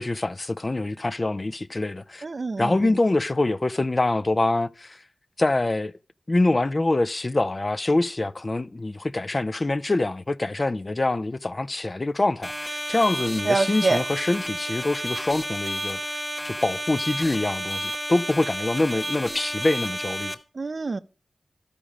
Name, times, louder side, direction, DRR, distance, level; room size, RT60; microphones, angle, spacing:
voice 1, 0.0-2.2 2.6-5.0 5.4-5.9 6.3-16.2 16.4-20.4, left 2 dB, 40° left, 0.5 m, -25 dB
voice 2, 2.2-2.7 13.5-14.0 20.6-21.0, right 3 dB, 60° right, 0.5 m, -25 dB
sound 1, 12.4-20.3, equal, 5° right, 1.3 m, -31 dB
12.0 x 5.1 x 4.9 m
cardioid pair, 45°, 0 cm